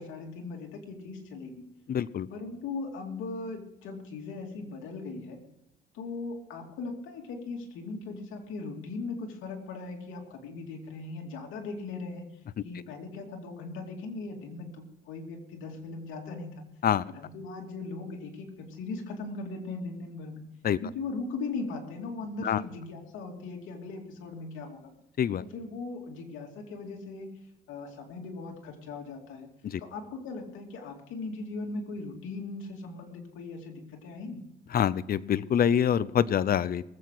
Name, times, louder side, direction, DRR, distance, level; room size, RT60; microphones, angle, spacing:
voice 1, 0.0-1.6 2.3-5.4 5.9-12.3 12.6-16.6 17.1-20.5 20.8-24.9 25.5-27.3 27.7-29.5 29.8-34.4, left 3 dB, 90° left, 1 dB, 2.8 m, -39 dB
voice 2, 1.9-2.3 16.8-17.0 20.6-20.8 22.4-22.6 25.2-25.4 29.6-29.8 34.7-36.8, left 9 dB, 50° left, 18 dB, 0.6 m, -25 dB
20.0 x 8.2 x 4.8 m, 0.88 s
cardioid pair, 90°, 20 cm